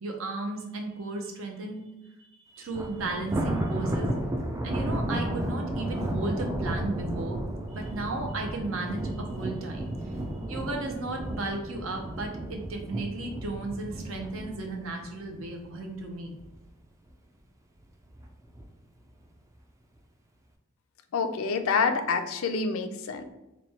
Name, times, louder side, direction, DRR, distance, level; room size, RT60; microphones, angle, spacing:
voice 1, 0.0-1.8 2.2-4.1 4.6-7.4 7.7-10.2 10.5-16.3, right 2 dB, 75° right, 2 dB, 0.7 m, -35 dB
Thunder, 2.7-16.0 16.4-16.7 17.1-17.2 18.1-18.6, right 1 dB, 15° right, 0.3 m, -33 dB
voice 2, 21.1-23.2, left 5 dB, 80° left, 8 dB, 0.4 m, -27 dB
3.1 x 2.2 x 4.1 m, 0.97 s
head